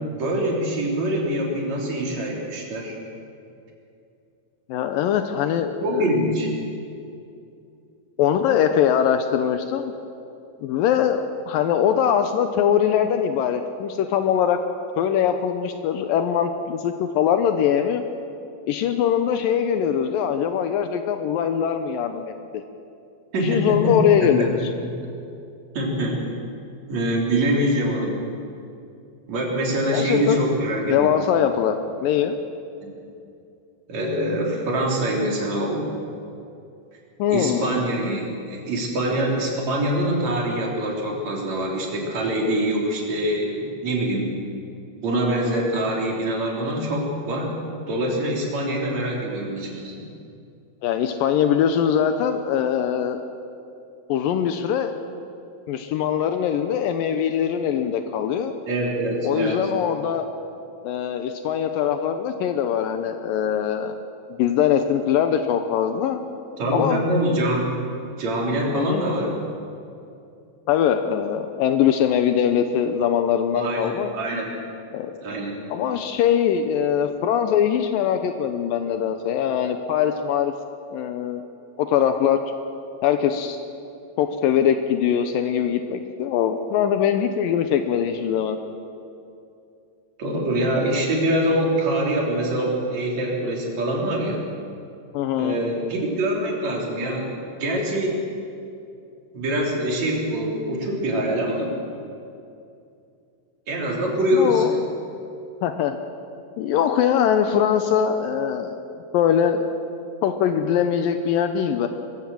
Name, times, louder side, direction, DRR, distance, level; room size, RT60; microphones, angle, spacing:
voice 1, 0.1-3.0 5.8-6.5 23.3-24.9 25.7-26.2 26.9-28.2 29.3-31.3 33.9-35.9 37.3-44.3 45.0-47.5 47.9-49.9 58.7-59.7 66.6-67.7 68.2-69.4 73.6-74.5 75.2-75.6 90.2-94.4 95.4-98.3 99.3-101.8 103.7-104.7, right 1 dB, 50° right, -1 dB, 4.4 m, -24 dB
voice 2, 4.7-6.1 8.2-9.9 10.6-14.6 15.0-18.0 18.7-22.6 23.4-24.6 29.9-30.5 30.9-32.4 37.2-37.7 50.8-53.2 54.1-54.9 55.7-58.5 59.2-60.3 60.8-63.9 64.3-66.2 66.7-67.0 68.7-69.1 70.7-74.1 74.9-75.2 75.7-80.5 80.9-81.4 81.8-82.4 83.0-83.6 84.2-88.6 95.1-95.6 104.3-104.8 105.6-106.0 106.6-108.8 109.1-109.7 110.2-111.9, left 9 dB, 80° left, 7 dB, 2.4 m, -22 dB
23.0 x 15.5 x 7.5 m, 2.6 s
omnidirectional pair, 4.2 m